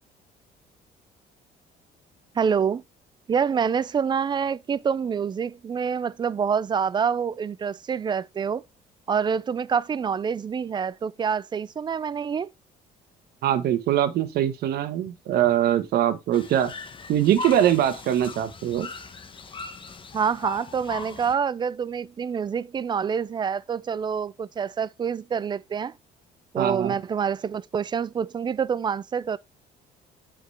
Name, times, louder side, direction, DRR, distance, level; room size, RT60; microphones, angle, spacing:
voice 1, 2.4-2.8 3.3-8.6 9.1-12.5 20.1-25.9 26.5-29.4, right 7 dB, 25° right, 0.4 m, -26 dB
voice 2, 13.4-16.7 17.1-18.9 26.6-27.0, right 11 dB, 70° right, 1.3 m, -22 dB
sound 1, 16.3-21.3, left 4 dB, 30° left, 1.2 m, -39 dB
8.0 x 5.0 x 3.4 m
cardioid pair, 110°, 17 cm